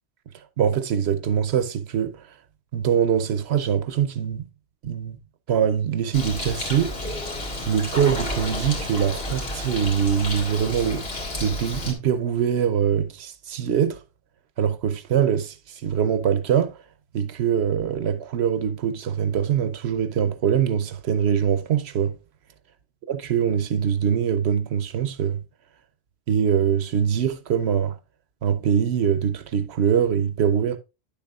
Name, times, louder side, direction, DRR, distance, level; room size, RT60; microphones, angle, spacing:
voice 1, 0.6-2.2 2.7-4.5 4.8-5.2 5.5-6.9 7.7-11.1 11.4-14.0 14.6-16.7 17.1-22.2 23.1-25.4 26.3-28.0 28.4-30.8, right 8 dB, 65° right, 1.0 m, -23 dB
Bird, 6.1-11.9, left 1 dB, 55° left, 2.0 m, -31 dB
9.7 x 7.1 x 2.4 m
omnidirectional pair, 1.2 m